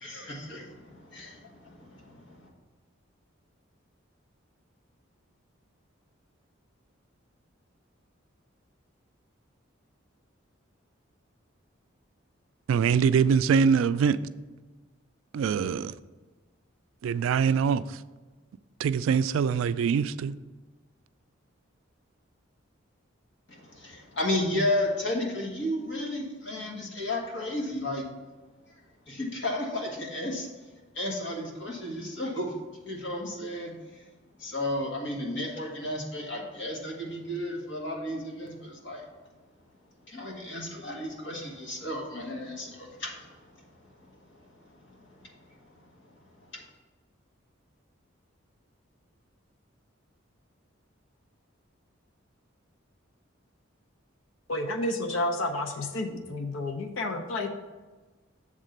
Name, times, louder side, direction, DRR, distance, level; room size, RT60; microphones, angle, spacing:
voice 1, 0.0-2.5 23.5-28.0 29.1-30.5 30.9-32.5 32.9-34.0 34.4-39.0 40.1-43.7 44.9-45.4 46.5-46.6, left 1 dB, 60° left, 1.6 m, -33 dB
voice 2, 12.7-14.2 15.3-15.9 17.0-18.0 18.8-20.3, right 6 dB, 80° right, 0.3 m, -23 dB
voice 3, 54.5-57.5, left 2 dB, 80° left, 0.6 m, -30 dB
7.4 x 3.6 x 6.5 m
head